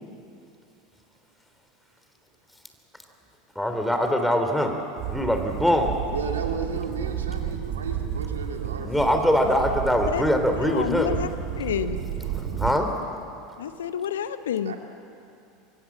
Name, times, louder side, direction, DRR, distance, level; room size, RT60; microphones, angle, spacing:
voice 1, 3.6-4.8 5.1-6.0 8.8-11.1 12.6-12.9, equal, 5° left, 5 dB, 3.4 m, -22 dB
sound 1, 5.0-12.7, right 9 dB, 50° right, 3.5 m, -32 dB
voice 2, 6.1-9.5 14.7-14.8, right 5 dB, 75° right, 3 dB, 2.7 m, -34 dB
voice 3, 10.6-11.3 11.5-12.0 13.6-14.7, left 9 dB, 70° left, 12 dB, 1.0 m, -29 dB
24.5 x 24.5 x 7.5 m, 2.7 s
figure-of-eight pair, 80°, 0 cm